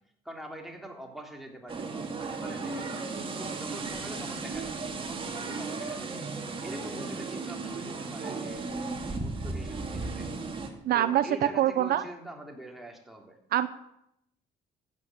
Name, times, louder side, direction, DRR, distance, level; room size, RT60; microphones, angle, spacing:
voice 1, 0.3-2.9 3.4-6.2 6.6-8.7 9.2-10.3 10.9-13.4, right 1 dB, ahead, 1 dB, 3.4 m, -44 dB
sound 1, 1.7-10.7, right 3 dB, 30° right, 2.5 m, -35 dB
voice 2, 10.8-11.2 11.6-12.0 13.5-13.7, right 12 dB, 65° right, 13 dB, 0.8 m, -24 dB
14.5 x 9.2 x 8.2 m, 0.80 s
cardioid pair, 110°, 17 cm